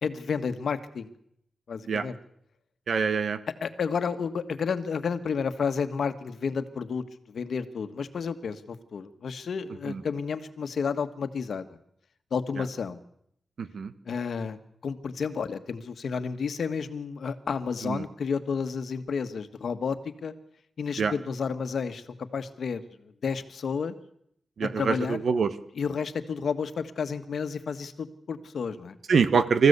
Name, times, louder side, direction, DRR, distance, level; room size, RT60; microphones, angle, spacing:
voice 1, 0.0-1.1 1.7-2.2 3.6-11.8 12.3-13.0 14.0-14.6 14.8-20.3 20.8-22.0 22.3-22.8 23.2-24.0 24.8-25.2 25.7-29.0, left 6 dB, 75° left, 10 dB, 1.5 m, -31 dB
voice 2, 2.9-3.4 9.9-10.0 13.6-13.9 17.8-18.0 21.0-21.1 24.6-25.5 29.1-29.7, right 5 dB, 70° right, 12 dB, 1.3 m, -24 dB
25.5 x 15.0 x 8.2 m, 0.73 s
wide cardioid pair, 140°, 0 cm